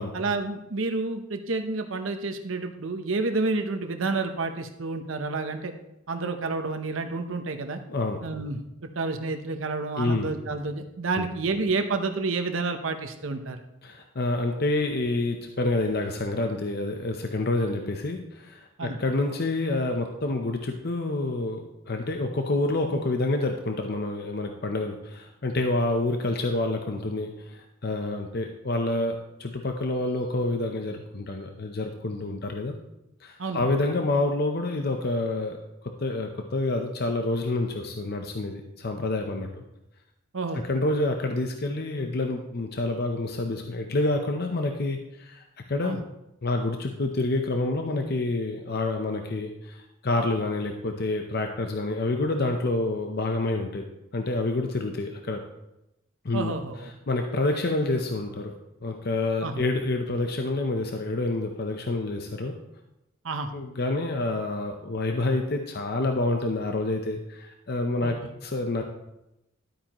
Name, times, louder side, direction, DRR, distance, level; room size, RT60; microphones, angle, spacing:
voice 1, 0.1-5.7 6.1-7.8 8.2-13.6 18.8-19.0 33.4-33.6 40.3-40.6 45.8-46.0 56.3-56.9 59.4-59.6 63.2-63.5 68.0-68.1, right 3 dB, 75° right, 6 dB, 0.8 m, -29 dB
voice 2, 7.9-8.2 10.0-10.3 11.2-11.3 13.8-32.7 33.2-35.6 35.8-39.6 40.5-46.0 46.4-53.8 54.1-55.4 56.2-56.5 56.8-58.5 58.8-62.5 63.5-68.8, left 2 dB, 50° left, 4 dB, 0.7 m, -28 dB
12.0 x 8.8 x 3.0 m, 0.90 s
head